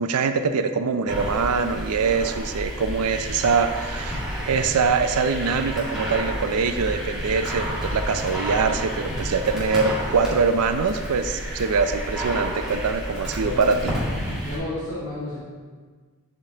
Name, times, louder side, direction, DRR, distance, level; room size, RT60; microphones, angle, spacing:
voice 1, 0.0-13.9, right 5 dB, 90° right, 9 dB, 0.5 m, -23 dB
sound 1, 1.1-14.6, equal, 5° right, 2.2 m, -30 dB
voice 2, 13.4-15.4, left 2 dB, 65° left, -10 dB, 1.8 m, -32 dB
12.0 x 5.1 x 2.8 m, 1.5 s
head